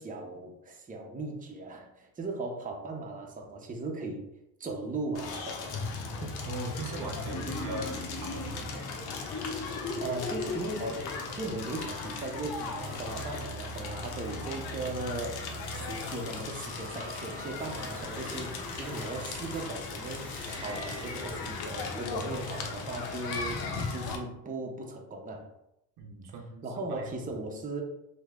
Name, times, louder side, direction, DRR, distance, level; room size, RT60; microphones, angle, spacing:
voice 1, 0.0-4.3 4.6-5.9 6.2-6.3 10.0-15.4 15.7-25.5 26.6-27.8, right 2 dB, 20° right, 1 dB, 0.6 m, -38 dB
Crackle, 5.1-24.2, left 3 dB, 75° left, 0.7 m, -37 dB
voice 2, 6.5-8.9 26.0-27.1, right 2 dB, 85° right, 2 dB, 0.7 m, -40 dB
sound 1, 7.3-11.3, left 3 dB, 25° left, 0.4 m, -38 dB
sound 2, 12.8-21.5, equal, 5° left, 1.0 m, -47 dB
3.0 x 2.1 x 3.5 m, 0.84 s
cardioid pair, 80°, 38 cm